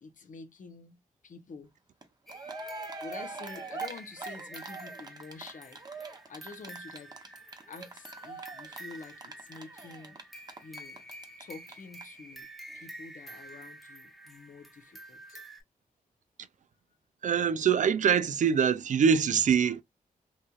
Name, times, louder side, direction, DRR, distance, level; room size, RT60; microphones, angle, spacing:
voice 1, 0.0-1.7 3.0-5.8 6.3-7.1 7.7-10.2 10.6-11.0 11.4-12.5 12.7-15.4, left 4 dB, 60° left, 0.8 m, -48 dB
Cheering, 2.0-2.1 2.3-11.4 11.7-11.8 12.0-12.1, right 3 dB, 25° right, 0.7 m, -42 dB
sound 1, 2.3-15.6, right 2 dB, ahead, 0.9 m, -48 dB
voice 2, 17.2-19.8, right 7 dB, 55° right, 0.4 m, -24 dB
3.0 x 2.7 x 2.3 m
cardioid pair, 80°, 15 cm